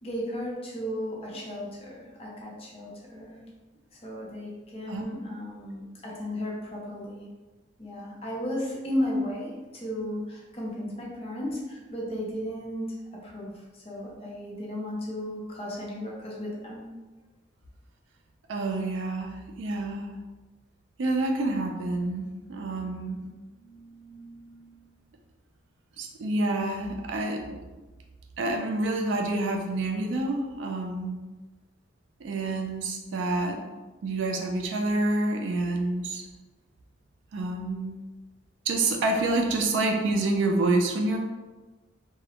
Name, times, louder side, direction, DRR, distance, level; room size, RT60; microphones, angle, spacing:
voice 1, 0.0-3.4 3.9-7.3 7.8-12.9 13.2-16.8, left 1 dB, 30° left, -3 dB, 0.5 m, -34 dB
voice 2, 18.5-20.2 21.0-23.2 23.7-24.5 26.0-27.6 28.4-31.2 32.2-33.6 34.0-36.2 37.3-38.0 38.7-41.2, right 2 dB, 65° right, 2 dB, 0.4 m, -28 dB
2.4 x 2.0 x 2.8 m, 1.2 s
head